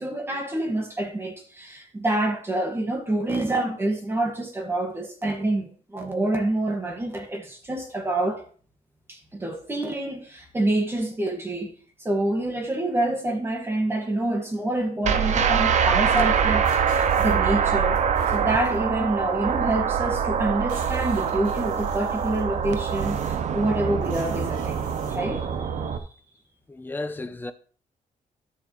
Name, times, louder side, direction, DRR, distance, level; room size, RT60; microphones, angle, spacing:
voice 1, 0.0-8.4 9.1-11.7 12.0-16.7 16.9-18.0 18.3-26.0, right 1 dB, 15° right, 1.8 m, -27 dB
sound 1, 15.0-26.0, right 7 dB, 60° right, 0.8 m, -24 dB
sound 2, 16.6-17.4 17.9-18.8 19.7-19.8 20.0-20.1 20.4-23.5 24.0-25.2, right 3 dB, 90° right, 4.3 m, -45 dB
voice 2, 26.7-27.5, left 2 dB, 15° left, 0.7 m, -33 dB
12.5 x 7.0 x 3.1 m
wide cardioid pair, 160°, 14 cm